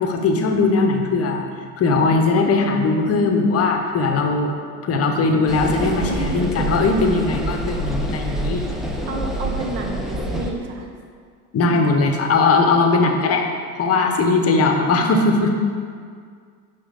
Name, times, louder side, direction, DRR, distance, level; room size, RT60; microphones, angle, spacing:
voice 1, 0.0-1.5 1.8-4.5 4.8-8.7 11.5-13.5 13.8-15.5, left 3 dB, 30° left, 3 dB, 0.8 m, -19 dB
sound 1, 5.5-10.5, right 1 dB, ahead, 0.4 m, -26 dB
voice 2, 9.1-10.9, right 2 dB, 55° right, 2 dB, 1.1 m, -30 dB
5.6 x 5.1 x 3.8 m, 2.1 s
hypercardioid pair, 95°, 45 cm